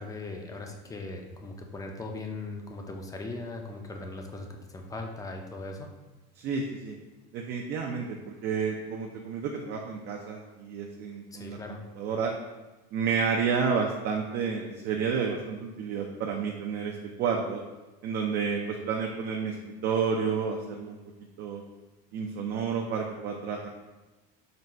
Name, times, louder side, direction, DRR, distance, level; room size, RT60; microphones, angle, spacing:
voice 1, 0.0-5.9 11.3-11.8, left 2 dB, 15° left, 3 dB, 0.4 m, -39 dB
voice 2, 6.4-7.0 7.3-11.6 12.0-12.3 12.9-17.6 18.0-21.0 21.4-21.6 22.1-23.7, right 6 dB, 50° right, 1 dB, 0.5 m, -30 dB
3.9 x 2.2 x 4.3 m, 1.1 s
supercardioid pair, 115°, 21 cm